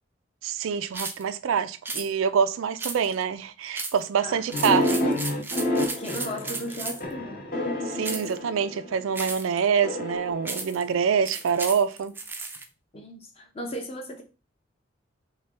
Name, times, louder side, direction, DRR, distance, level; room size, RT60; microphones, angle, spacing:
voice 1, 0.4-5.1 7.9-12.1, right 7 dB, 85° right, 0.4 m, -26 dB
sound 1, 0.9-1.2 1.8-2.1 2.8-3.2 3.7-4.0 4.5-7.1 8.0-8.3 9.1-9.6 10.4-10.8 11.2-12.6, right 3 dB, 10° right, 0.3 m, -34 dB
sound 2, 4.5-9.1 9.8-11.4, left 1 dB, 45° left, 1.0 m, -29 dB
voice 2, 6.0-7.4 12.9-14.2, equal, 30° left, 0.6 m, -36 dB
5.5 x 2.2 x 3.3 m
head